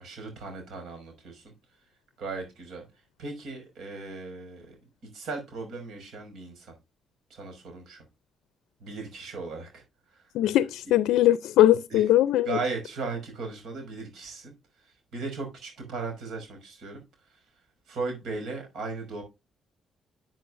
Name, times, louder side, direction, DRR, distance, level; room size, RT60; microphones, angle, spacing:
voice 1, 0.0-1.5 2.2-2.9 3.2-4.8 5.0-6.7 7.3-8.0 8.8-9.8 10.1-10.3 10.9-11.0 11.9-12.0 12.5-17.4 17.9-19.2, right 3 dB, 75° right, 5.6 m, -37 dB
voice 2, 10.3-12.5, left 13 dB, 90° left, 0.4 m, -20 dB
12.0 x 7.6 x 2.5 m
cardioid pair, 90°, 0 cm